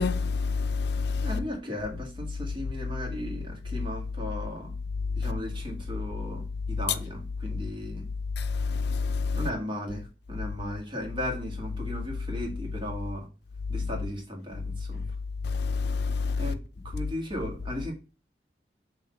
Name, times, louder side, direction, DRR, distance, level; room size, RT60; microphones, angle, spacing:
voice 1, 0.0-1.3 8.7-9.4 15.5-16.3, left 4 dB, 60° left, 0.5 m, -27 dB
voice 2, 1.2-4.7 5.2-8.1 9.3-13.3 13.7-15.2 16.4-17.9, equal, 25° right, 1.8 m, -36 dB
5.8 x 3.1 x 5.3 m
head